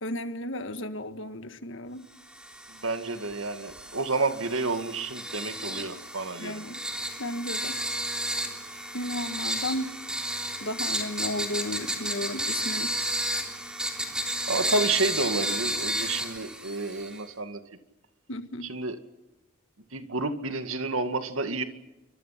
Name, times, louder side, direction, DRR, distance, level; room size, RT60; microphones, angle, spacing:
voice 1, 0.0-2.0 6.4-6.8 7.2-7.8 8.9-9.9 10.6-13.0 18.3-18.7, left 1 dB, 65° left, 9 dB, 1.7 m, -34 dB
sound 1, 2.3-17.2, right 1 dB, 5° right, 3.5 m, -32 dB
voice 2, 2.7-6.6 14.5-17.6 18.6-19.0 19.9-21.6, right 3 dB, 90° right, 8 dB, 2.2 m, -30 dB
28.5 x 25.0 x 6.0 m, 0.99 s
head